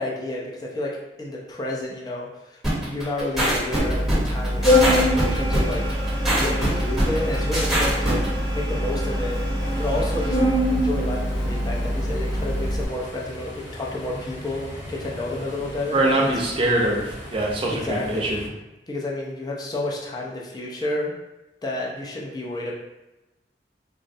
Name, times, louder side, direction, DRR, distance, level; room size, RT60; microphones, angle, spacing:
voice 1, 0.0-5.9 6.3-8.2 8.5-9.4 9.8-10.4 10.7-16.3 17.7-18.3 18.9-21.1 21.6-22.7, left 2 dB, 25° left, -3 dB, 0.4 m, -30 dB
sound 1, 2.6-8.3, right 1 dB, ahead, 0.8 m, -23 dB
Organ, 3.8-12.8, equal, 45° left, 0.7 m, -23 dB
sound 2, 9.6-18.5, equal, 75° left, 1.3 m, -39 dB
voice 2, 15.9-18.4, right 1 dB, 30° right, -1 dB, 0.5 m, -23 dB
3.5 x 2.1 x 2.6 m, 1.0 s
head